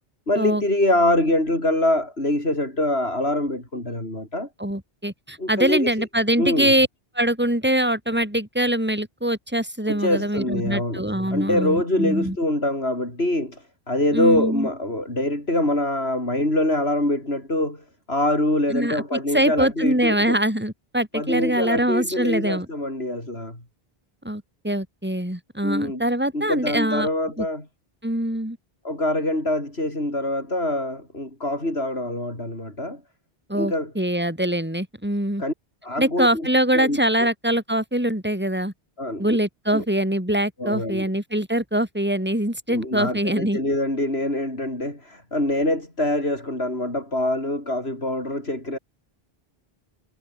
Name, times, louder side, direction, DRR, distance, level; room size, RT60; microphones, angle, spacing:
voice 1, 0.3-4.5 5.4-5.9 6.4-6.7 9.9-11.0 11.3-17.8 18.1-20.4 21.1-23.6 25.6-26.0 26.3-27.6 28.8-33.0 33.5-33.9 35.4-35.5 35.8-36.3 36.7-37.0 39.0-39.4 39.7-39.8 40.6-41.0 42.7-48.8, left 1 dB, 80° left, 8.0 m, -24 dB
voice 2, 4.6-6.9 7.1-12.4 14.1-14.7 18.7-22.7 24.2-27.1 27.4-27.5 28.0-28.6 33.5-35.4 36.0-38.7 39.2-43.6, right 1 dB, 10° right, 4.8 m, -23 dB
omnidirectional pair, 1.0 m